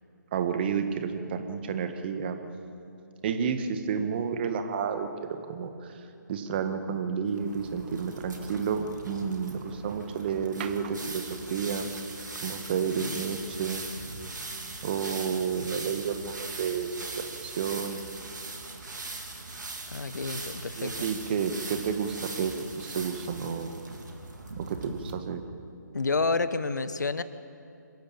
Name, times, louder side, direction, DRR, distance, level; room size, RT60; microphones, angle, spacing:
voice 1, 0.3-2.4 3.2-5.1 5.5-5.7 6.3-11.9 12.4-13.8 14.8-16.9 17.2-18.0 20.8-23.7 24.6-25.4, right 6 dB, 30° right, 8 dB, 1.6 m, -31 dB
sound 1, 7.3-25.1, right 3 dB, 70° right, 3.1 m, -40 dB
voice 2, 19.9-21.1 25.9-27.2, left 3 dB, 65° left, 13 dB, 1.2 m, -29 dB
26.5 x 15.0 x 8.7 m, 2.6 s
figure-of-eight pair, 145°, 10 cm